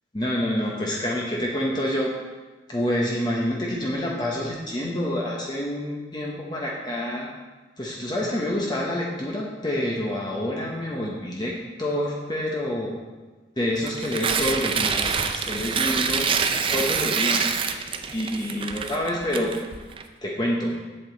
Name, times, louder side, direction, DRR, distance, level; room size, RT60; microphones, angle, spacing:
voice 1, 0.1-2.1 2.7-7.3 7.8-11.5 11.8-12.9 13.6-15.2 15.4-16.3 16.7-19.5 20.2-20.7, left 1 dB, 25° left, -3 dB, 0.9 m, -27 dB
Tearing, 13.8-20.0, right 5 dB, 30° right, 0.4 m, -26 dB
7.7 x 7.6 x 3.9 m, 1.3 s
head